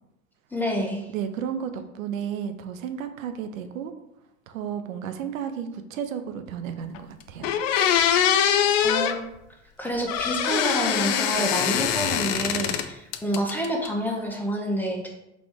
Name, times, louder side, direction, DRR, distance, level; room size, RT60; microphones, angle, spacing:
voice 1, 0.5-1.1 8.8-9.2 9.8-15.1, equal, 5° left, 0 dB, 1.0 m, -28 dB
voice 2, 1.1-3.9 4.5-7.5, right 8 dB, 85° right, 8 dB, 0.5 m, -33 dB
sound 1, 6.9-7.0 7.4-9.2 10.1-12.9 13.1-13.9, left 9 dB, 75° left, 0.5 m, -23 dB
4.1 x 2.9 x 3.5 m, 0.86 s
hypercardioid pair, 75°, 39 cm